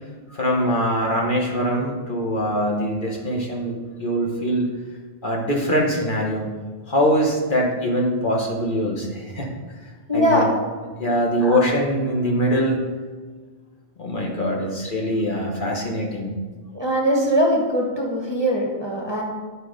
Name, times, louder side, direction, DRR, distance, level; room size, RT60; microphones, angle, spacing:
voice 1, 0.3-4.7 5.2-6.5 6.9-9.5 10.1-10.5 11.0-12.8 14.0-16.3, equal, 50° left, -1 dB, 1.4 m, -23 dB
voice 2, 10.1-10.5 11.4-11.6 16.7-19.2, equal, 25° right, -1 dB, 1.2 m, -21 dB
10.0 x 4.8 x 5.1 m, 1.4 s
omnidirectional pair, 1.1 m